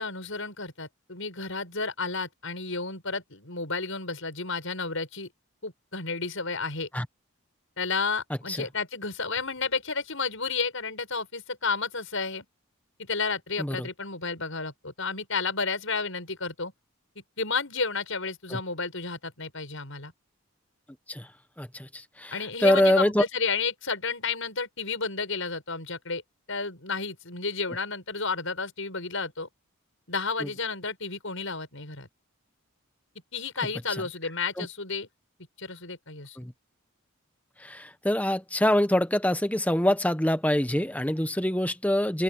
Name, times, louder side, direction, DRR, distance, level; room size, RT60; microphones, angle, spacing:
voice 1, 0.0-5.3 5.6-6.9 7.8-12.4 13.1-16.7 17.4-20.1 22.3-26.2 26.5-29.5 30.1-32.1 33.3-35.1 35.6-36.4, left 4 dB, 65° left, 7.1 m, -31 dB
voice 2, 21.6-22.3 22.6-23.2 30.4-30.5 34.6-34.7 36.4-36.5 37.6-42.2, left 1 dB, 5° left, 1.2 m, -25 dB
open air
head